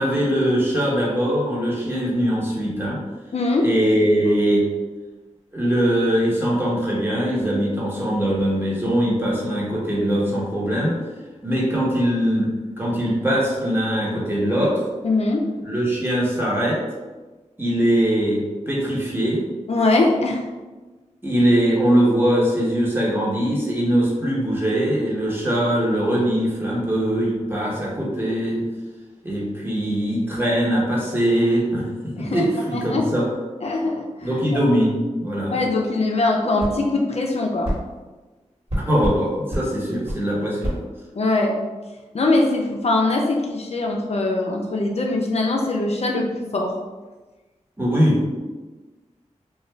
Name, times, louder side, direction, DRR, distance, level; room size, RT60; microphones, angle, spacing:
voice 1, 0.0-3.0 3.6-4.7 5.5-11.0 11.4-14.8 15.6-16.8 17.6-19.5 21.2-28.7 29.2-31.9 32.2-33.3 34.2-35.5 38.8-40.8 47.8-48.3, equal, 15° right, -5 dB, 1.0 m, -21 dB
voice 2, 3.3-3.7 15.0-15.5 19.7-20.4 32.2-32.4 32.7-33.1 33.6-34.6 35.5-37.7 41.1-41.6 42.1-46.7, left 2 dB, 55° left, 0 dB, 0.4 m, -22 dB
sound 1, 36.6-36.8 37.6-37.8 38.7-39.2 39.5-39.7 40.1-40.2 40.6-40.8, right 1 dB, 45° right, 1.3 m, -26 dB
2.4 x 2.2 x 3.1 m, 1.3 s
cardioid pair, 45°, 13 cm